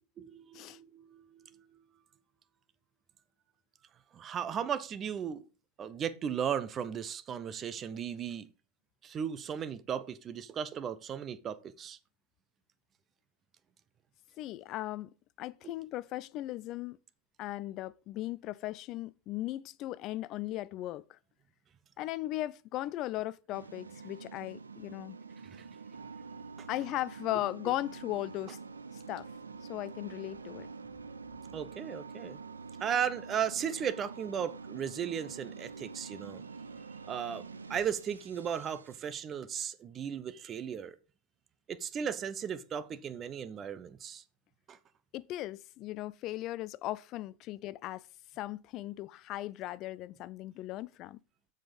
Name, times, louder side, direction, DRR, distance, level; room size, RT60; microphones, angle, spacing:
voice 1, 0.2-1.6 4.1-5.5 5.8-8.5 9.0-12.0 15.6-15.7 25.5-25.7 26.6-26.7 31.5-32.4 32.8-36.4 37.1-41.0 41.7-44.2 44.7-44.8, right 8 dB, 25° right, 0.8 m, -36 dB
voice 2, 14.4-15.1 15.4-17.0 17.4-21.2 22.0-25.2 26.7-28.6 29.1-29.3 29.6-30.7 45.1-48.0 48.4-51.2, left 15 dB, 35° left, 0.4 m, -37 dB
sound 1, 23.5-39.2, right 5 dB, 75° right, 0.7 m, -47 dB
7.7 x 6.6 x 5.4 m
figure-of-eight pair, 90°, 0 cm